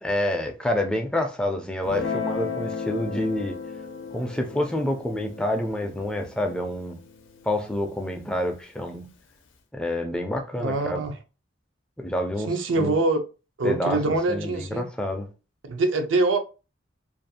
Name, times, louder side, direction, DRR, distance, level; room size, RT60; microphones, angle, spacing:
voice 1, 0.0-3.6 4.1-7.0 7.4-9.1 9.7-11.0 12.0-13.0 13.6-15.3, left 1 dB, 5° left, 0.3 m, -28 dB
Guitar, 1.8-8.4, left 5 dB, 85° left, 0.5 m, -35 dB
voice 2, 10.6-11.1 12.5-13.2 13.6-14.9 15.7-16.4, right 2 dB, 80° right, 0.5 m, -24 dB
2.5 x 2.3 x 2.6 m
head